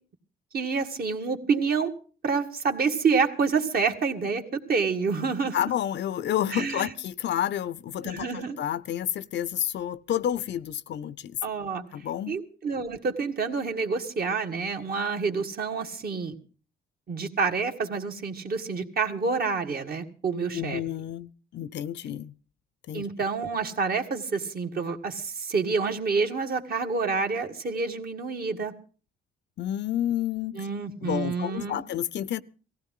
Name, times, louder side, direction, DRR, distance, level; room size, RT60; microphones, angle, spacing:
voice 1, 0.5-1.9 2.2-5.6 6.5-6.9 8.0-8.6 11.4-11.8 12.3-16.3 17.1-20.8 22.9-28.7 30.6-31.8, right 5 dB, 50° right, 2.1 m, -28 dB
voice 2, 5.5-11.4 11.9-12.4 20.5-22.3 22.9-23.1 29.6-30.6 31.0-32.4, left 11 dB, 65° left, 0.6 m, -30 dB
18.5 x 15.5 x 3.8 m
cardioid pair, 90°, 20 cm